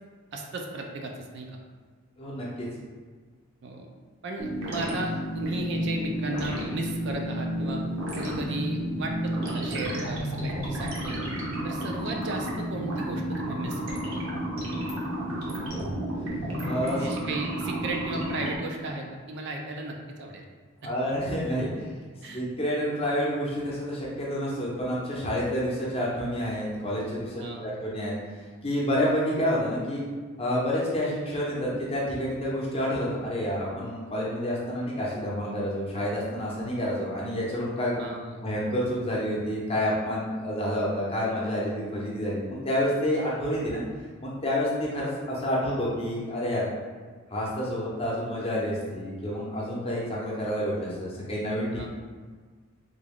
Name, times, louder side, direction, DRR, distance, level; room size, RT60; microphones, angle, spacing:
voice 1, 0.3-1.6 3.6-3.9 4.2-7.8 8.2-11.3 11.6-14.3 17.0-20.4 22.2-22.4 27.4-27.8 37.9-38.4 51.7-51.9, right 2 dB, 55° right, 1 dB, 0.4 m, -35 dB
voice 2, 2.2-2.7 16.6-17.1 20.8-21.9 22.3-28.2 28.6-30.0 30.4-38.0 38.4-43.8 44.2-46.7 47.3-51.9, equal, 25° left, -5 dB, 0.7 m, -29 dB
sound 1, 4.4-18.6, right 1 dB, 70° right, 0.8 m, -31 dB
3.5 x 2.3 x 3.5 m, 1.5 s
head